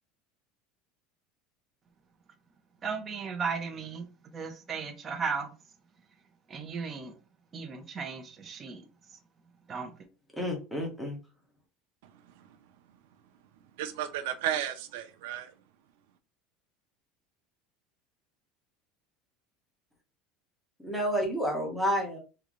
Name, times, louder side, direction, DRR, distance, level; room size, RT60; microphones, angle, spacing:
voice 1, 2.8-5.5 6.5-7.1 7.5-8.8 9.7-9.9, right 5 dB, 25° right, 0.6 m, -35 dB
voice 2, 10.4-11.2 20.8-22.2, equal, ahead, 1.1 m, -30 dB
voice 3, 12.0-12.5 13.8-15.5, right 11 dB, 85° right, 0.6 m, -34 dB
3.8 x 2.3 x 3.1 m
cardioid pair, 155°, 0 cm